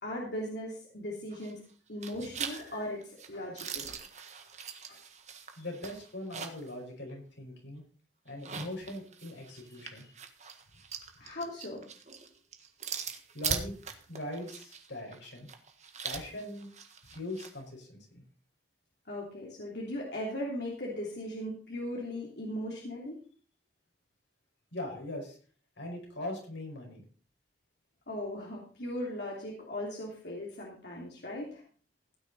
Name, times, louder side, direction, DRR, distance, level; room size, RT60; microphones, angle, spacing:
voice 1, 0.0-1.6 1.9-4.0 4.9-5.0 11.2-11.8 19.1-23.2 28.1-31.6, left 1 dB, 65° left, -3 dB, 3.1 m, -38 dB
sound 1, 1.3-1.7 2.0-6.7 7.1-7.2 8.3-17.5, right 6 dB, 40° right, 1.6 m, -41 dB
voice 2, 5.6-7.8 8.3-10.1 13.3-13.7 14.1-15.5 16.0-16.7 17.1-18.2 24.7-25.4 25.8-27.0, left 1 dB, 85° left, 2 dB, 5.2 m, -41 dB
16.0 x 9.8 x 4.1 m, 0.41 s
head